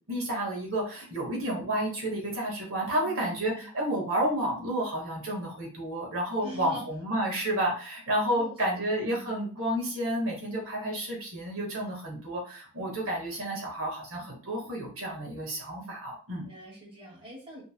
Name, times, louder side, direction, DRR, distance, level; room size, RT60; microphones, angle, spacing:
voice 1, 0.1-16.5, right 1 dB, 65° right, -2 dB, 1.7 m, -31 dB
voice 2, 3.0-3.7 6.4-6.8 8.3-9.4 16.4-17.6, equal, 25° right, -3 dB, 2.0 m, -44 dB
5.9 x 3.9 x 2.2 m, 0.40 s
head